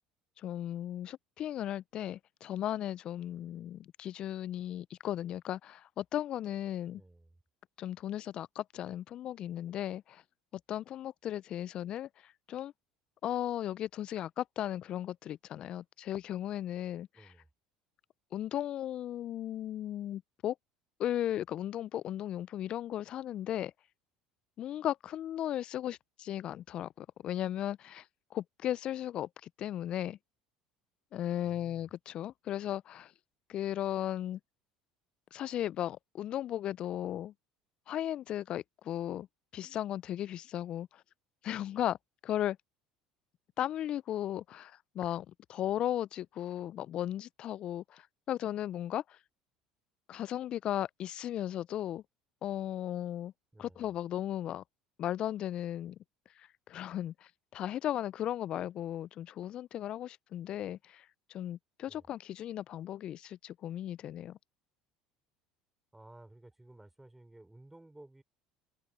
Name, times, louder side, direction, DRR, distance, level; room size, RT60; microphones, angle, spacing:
voice 1, 0.4-7.0 7.8-10.2 10.5-12.7 13.2-17.3 18.3-20.6 21.0-23.7 24.6-28.0 28.3-30.2 31.1-33.1 33.5-34.4 35.3-37.3 37.9-39.3 39.5-41.0 41.4-42.0 42.2-42.6 43.6-49.2 50.1-52.0 52.4-53.3 53.6-54.6 55.0-56.0 56.4-64.4, left 11 dB, 50° left, 0.6 m, -36 dB
voice 2, 6.9-7.4 17.1-17.5 31.4-31.9 53.5-53.9 61.9-62.1 65.9-68.2, right 2 dB, 10° right, 6.1 m, -56 dB
hypercardioid pair, 70°, 2 cm